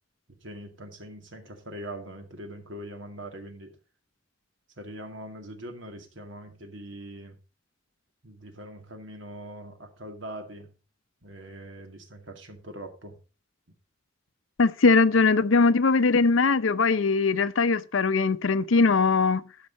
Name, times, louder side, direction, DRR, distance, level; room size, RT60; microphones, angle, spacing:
voice 1, 0.4-3.7 4.8-7.4 8.2-10.7 11.2-13.2, right 1 dB, 75° right, 2.2 m, -42 dB
voice 2, 14.6-19.4, left 4 dB, 85° left, 0.6 m, -21 dB
12.5 x 5.4 x 5.3 m
head